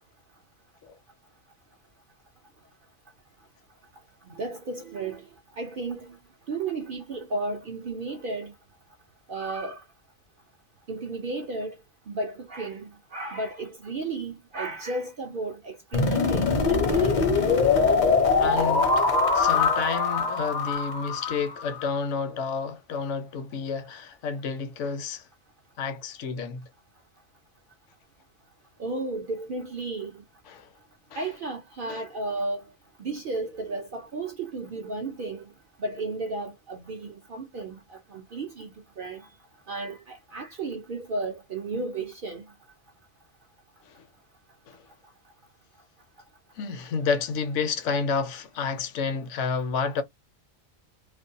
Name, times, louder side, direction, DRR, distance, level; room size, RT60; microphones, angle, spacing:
voice 1, 4.2-5.3 5.6-6.2 6.5-8.5 9.3-9.8 10.9-11.8 12.1-17.4 28.8-30.2 31.1-32.6 33.0-35.5 35.8-39.3 39.7-42.4, right 3 dB, 55° right, 0.6 m, -33 dB
sound 1, 15.9-21.9, left 4 dB, 45° left, 0.6 m, -23 dB
voice 2, 18.4-25.3 25.8-26.7 30.5-30.7 31.1-31.3 31.9-32.0 43.8-44.1 44.7-44.8 46.5-50.0, left 5 dB, 70° left, 0.9 m, -30 dB
2.5 x 2.2 x 2.6 m
omnidirectional pair, 1.4 m